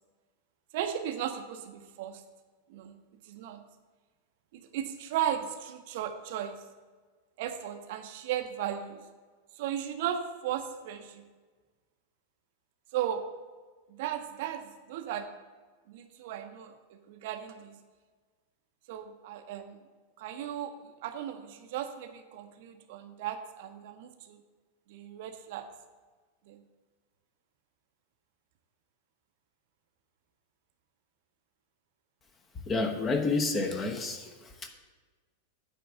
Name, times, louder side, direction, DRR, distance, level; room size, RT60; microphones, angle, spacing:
voice 1, 0.7-2.2 2.7-3.0 3.3-3.6 4.5-6.6 7.4-9.0 9.6-11.2 12.9-13.2 14.0-14.6 14.9-15.3 15.9-16.7 17.1-17.7 18.9-19.8 20.2-24.4 24.9-25.7 26.5-26.6, right 10 dB, 50° right, 7 dB, 0.6 m, -36 dB
voice 2, 32.7-34.3 34.6-34.7, left 3 dB, 20° left, 5 dB, 0.9 m, -29 dB
9.1 x 3.4 x 6.7 m, 1.4 s
figure-of-eight pair, 90°, 0 cm